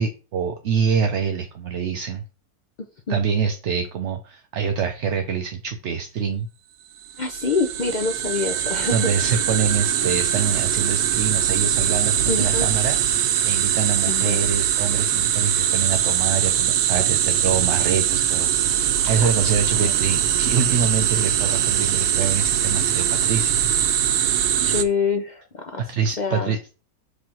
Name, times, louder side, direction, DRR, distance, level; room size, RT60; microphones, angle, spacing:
voice 1, 0.0-2.2 3.1-6.5 8.9-23.6 25.8-26.6, right 6 dB, 60° right, 5 dB, 0.8 m, -25 dB
sound 1, 7.1-24.8, right 10 dB, 90° right, 1.2 m, -22 dB
voice 2, 7.2-9.1 12.3-12.7 14.1-14.4 19.8-19.9 24.6-26.6, left 4 dB, 70° left, 4 dB, 0.4 m, -26 dB
5.0 x 3.4 x 5.6 m, 0.35 s
omnidirectional pair, 1.6 m